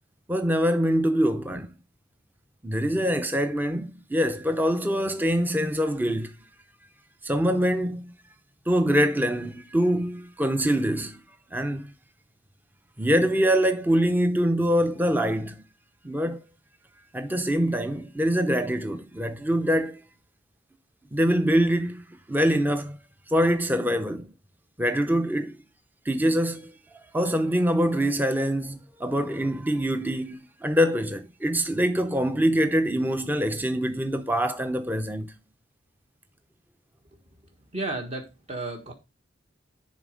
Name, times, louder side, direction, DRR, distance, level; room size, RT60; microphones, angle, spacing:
voice 1, 0.3-1.7 2.6-6.3 7.2-8.1 8.7-11.2 11.5-11.9 13.0-15.5 16.0-16.4 17.1-20.0 21.1-23.0 23.3-24.3 24.8-25.6 26.1-26.7 27.1-35.3, equal, 10° right, 0.6 m, -24 dB
voice 2, 37.7-38.9, right 2 dB, 35° right, 1.4 m, -33 dB
10.5 x 4.1 x 5.1 m
head